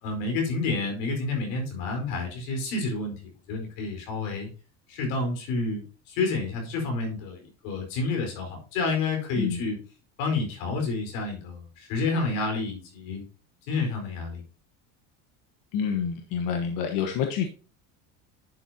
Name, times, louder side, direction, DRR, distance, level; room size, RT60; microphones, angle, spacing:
voice 1, 0.0-4.5 4.9-9.8 10.2-13.2 13.7-14.4, left 3 dB, 85° left, 3 dB, 4.7 m, -29 dB
voice 2, 15.7-17.5, left 7 dB, 55° left, 4 dB, 1.3 m, -28 dB
11.0 x 7.2 x 2.8 m, 0.35 s
cardioid pair, 150°, 38 cm